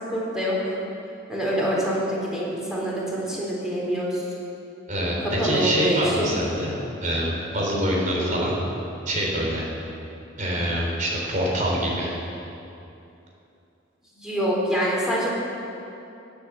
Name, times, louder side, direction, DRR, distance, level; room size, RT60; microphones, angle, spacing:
voice 1, 0.1-0.8 1.3-4.2 5.4-6.3 8.2-8.3 14.1-15.3, equal, 5° right, -5 dB, 4.0 m, -25 dB
voice 2, 4.9-6.7 7.0-8.5 9.1-9.6 10.4-12.2, equal, 45° right, -2 dB, 3.8 m, -25 dB
18.0 x 8.9 x 7.3 m, 2.8 s
head